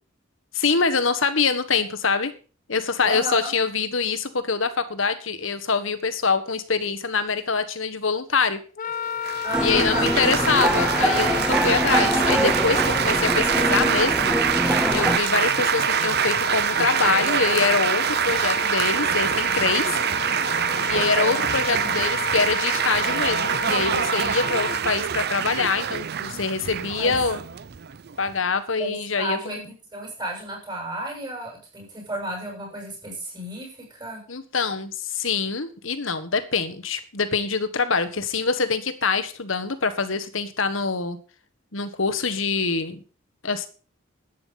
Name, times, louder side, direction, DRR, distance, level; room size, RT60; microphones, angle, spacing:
voice 1, 0.5-2.3 2.7-8.6 9.6-14.3 14.9-20.0 20.8-27.4 28.2-29.6 34.3-41.2 41.7-43.0 43.4-43.7, left 5 dB, 75° left, 10 dB, 1.6 m, -24 dB
voice 2, 3.0-3.5 9.4-10.1 20.9-21.4 26.9-27.2 28.8-29.6 29.9-34.2, right 1 dB, 20° right, -1 dB, 7.3 m, -33 dB
Wind instrument woodwind instrument, 8.8-24.8, left 8 dB, 40° left, 0.5 m, -32 dB
Laughter / Applause / Chatter, 9.2-28.4, right 9 dB, 55° right, 0.6 m, -25 dB
sound 1, 9.5-15.2, equal, 5° right, 0.7 m, -24 dB
11.5 x 9.5 x 5.8 m, 0.38 s
head